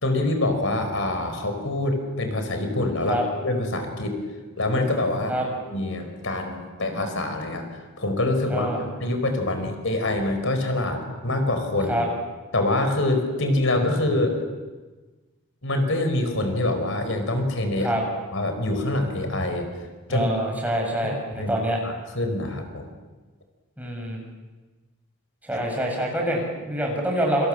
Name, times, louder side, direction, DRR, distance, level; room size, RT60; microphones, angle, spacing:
voice 1, 0.0-3.2 3.4-4.2 4.6-5.3 5.6-12.0 12.5-14.4 15.6-17.9 18.3-19.7 20.1-20.3 20.7-20.8 21.0-21.1 21.4-22.9, left 2 dB, 65° left, 6 dB, 4.8 m, -25 dB
voice 2, 8.5-8.9 11.9-12.0 17.8-18.0 20.1-21.8 23.8-24.2 25.4-27.5, right 1 dB, 5° right, 0 dB, 7.5 m, -26 dB
29.0 x 26.5 x 7.6 m, 1.3 s
head